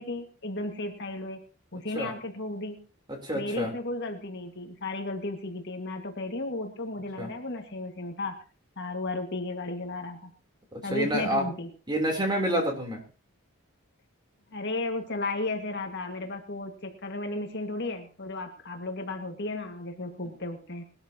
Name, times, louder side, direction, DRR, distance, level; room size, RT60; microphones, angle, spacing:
voice 1, 0.0-1.4 1.7-2.8 3.3-8.4 8.8-10.3 10.8-11.7 14.5-20.8, left 2 dB, 50° left, 4 dB, 1.9 m, -34 dB
voice 2, 3.1-3.7 7.2-7.3 10.7-11.4 11.9-13.0, equal, 20° right, 1 dB, 3.5 m, -28 dB
21.0 x 13.0 x 2.9 m, 0.36 s
head